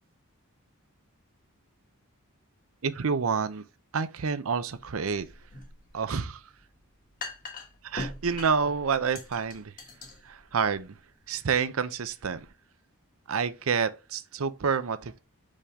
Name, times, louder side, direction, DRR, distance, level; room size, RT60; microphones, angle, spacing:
voice 1, 2.8-3.6 3.9-5.3 5.9-6.5 7.8-9.7 10.2-11.0 11.3-12.5 13.3-15.2, right 6 dB, 70° right, 0.6 m, -28 dB
sound 1, 4.7-12.5, left 2 dB, 40° left, 1.6 m, -44 dB
5.4 x 5.0 x 3.6 m
head